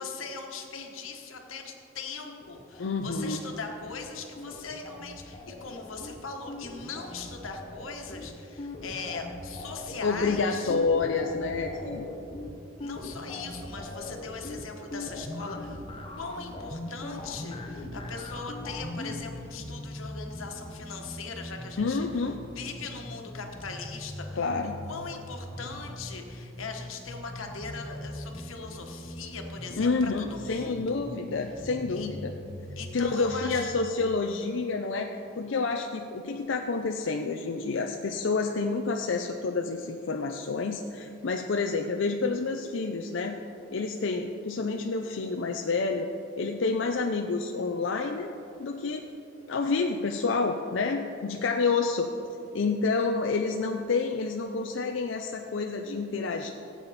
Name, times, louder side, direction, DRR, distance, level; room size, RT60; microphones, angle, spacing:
voice 1, 0.0-10.7 12.8-15.8 16.2-22.1 22.5-31.1 31.9-32.1 32.8-33.7, left 4 dB, 90° left, 3 dB, 1.4 m, -40 dB
sound 1, 2.2-4.1 4.4-19.1, left 2 dB, 25° left, 0.9 m, -41 dB
voice 2, 2.8-3.4 10.0-12.1 21.8-22.4 24.4-24.7 29.8-32.3 32.9-43.4 43.7-46.1 46.4-48.3 48.6-49.0 49.5-52.1 52.5-56.5, left 4 dB, 65° left, 3 dB, 0.5 m, -29 dB
sound 2, 17.5-33.5, equal, 5° left, 2.5 m, -42 dB
16.0 x 8.3 x 4.1 m, 2.9 s
head